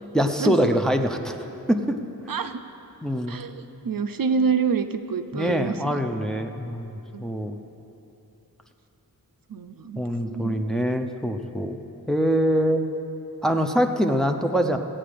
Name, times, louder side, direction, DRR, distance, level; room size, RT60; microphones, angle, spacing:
voice 1, 0.1-1.4 1.7-2.0 3.0-3.4 5.3-7.6 10.0-11.8 12.1-12.8 13.4-14.8, equal, ahead, 4 dB, 0.6 m, -24 dB
voice 2, 2.3-2.6 3.3-6.0 7.1-7.2 9.5-10.0 10.3-10.7, right 6 dB, 65° right, 9 dB, 0.5 m, -27 dB
16.0 x 8.7 x 5.1 m, 2.9 s
wide cardioid pair, 90°, 38 cm